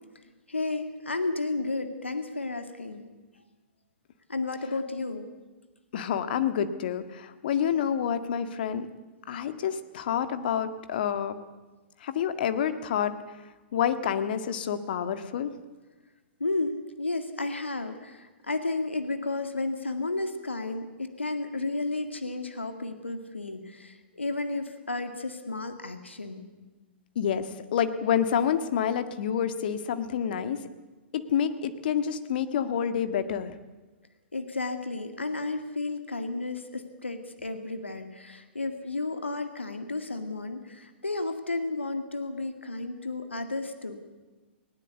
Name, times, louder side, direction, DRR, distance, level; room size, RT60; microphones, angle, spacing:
voice 1, 0.5-3.1 4.3-5.3 16.4-26.5 34.3-44.0, left 3 dB, 85° left, 7 dB, 2.1 m, -32 dB
voice 2, 5.9-8.9 9.3-11.4 12.0-13.1 13.7-15.5 27.2-30.6 31.1-33.5, left 8 dB, 55° left, 10 dB, 1.8 m, -28 dB
20.0 x 18.5 x 8.3 m, 1.2 s
figure-of-eight pair, 110°, 6 cm